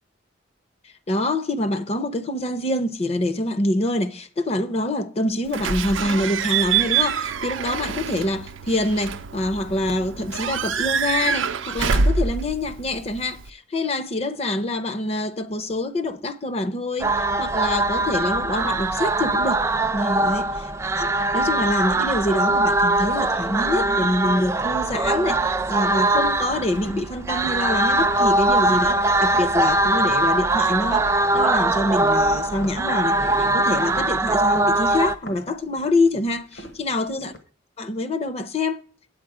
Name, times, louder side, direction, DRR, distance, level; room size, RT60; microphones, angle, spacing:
voice 1, 1.1-19.6 19.9-20.5 20.9-31.1 31.3-37.3 37.8-38.8, left 1 dB, 35° left, 0.6 m, -25 dB
Slam / Squeak / Alarm, 5.5-13.5, right 6 dB, 85° right, 0.5 m, -25 dB
sound 1, 17.0-35.1, right 2 dB, 15° right, 0.3 m, -21 dB
sound 2, 25.2-29.6 30.0-30.3 30.6-37.4, left 1 dB, 70° left, 1.5 m, -44 dB
8.7 x 8.5 x 4.9 m
head